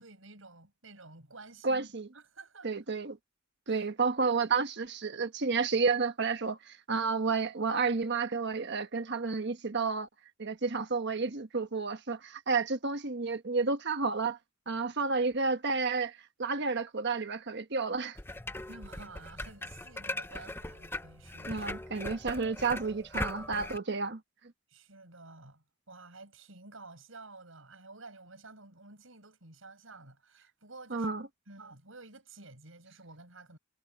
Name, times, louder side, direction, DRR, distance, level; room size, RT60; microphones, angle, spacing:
voice 1, 0.0-2.7 3.7-3.9 18.7-21.7 24.7-31.1 31.5-33.6, right 3 dB, 80° right, 7.6 m, -51 dB
voice 2, 1.6-2.1 2.6-3.2 3.7-10.1 10.4-14.4 14.7-18.2 21.5-24.2 30.9-31.2, right 4 dB, 60° right, 1.3 m, -31 dB
sound 1, 18.2-23.8, left 2 dB, 10° left, 0.9 m, -40 dB
head